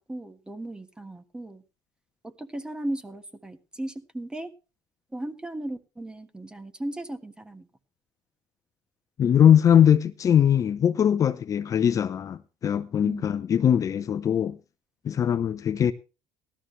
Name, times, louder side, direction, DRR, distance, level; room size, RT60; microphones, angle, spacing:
voice 1, 0.0-1.6 2.2-4.5 5.1-7.7 13.0-13.2, right 1 dB, 10° right, 1.5 m, -36 dB
voice 2, 9.2-14.6 15.0-15.9, left 9 dB, 40° left, 0.7 m, -21 dB
16.5 x 12.5 x 3.2 m
cardioid pair, 105°, 9 cm